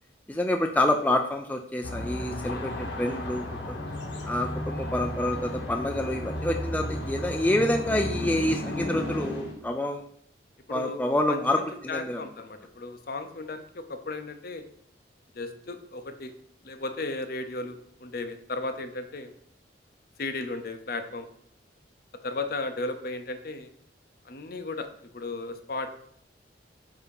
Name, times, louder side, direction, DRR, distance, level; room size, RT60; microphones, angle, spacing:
voice 1, 0.3-3.8 4.2-10.0 10.7-12.2, left 1 dB, 10° left, 4 dB, 0.3 m, -27 dB
sound 1, 1.8-9.5, left 1 dB, 80° left, 1.3 m, -33 dB
voice 2, 10.7-11.0 11.3-11.4 11.9-14.6 15.3-16.3 16.6-19.3 20.2-21.3 22.2-23.7 24.2-25.9, left 3 dB, 55° left, 8 dB, 0.7 m, -35 dB
8.2 x 2.8 x 5.3 m, 0.68 s
head